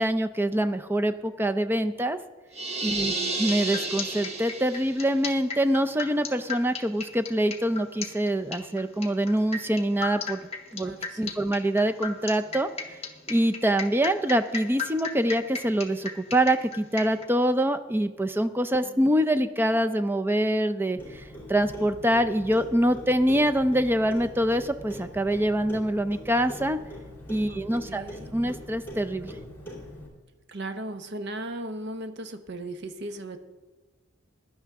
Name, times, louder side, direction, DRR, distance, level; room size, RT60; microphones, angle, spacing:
voice 1, 0.0-2.2 2.8-3.1 3.4-10.4 10.7-12.7 13.3-21.2 21.5-26.8 27.3-28.0 28.3-29.3, right 1 dB, 10° right, 9 dB, 0.5 m, -25 dB
sound 1, 2.5-5.1, right 3 dB, 35° right, 1.1 m, -31 dB
voice 2, 2.9-3.4 10.8-11.4 18.8-19.1 27.5-28.6 30.5-33.4, right 1 dB, 60° right, 8 dB, 0.9 m, -38 dB
sound 2, 3.3-17.2, left 5 dB, 30° left, 1.0 m, -35 dB
Clock, 21.0-30.1, equal, 10° left, 2.8 m, -42 dB
16.0 x 11.0 x 3.6 m, 1.2 s
head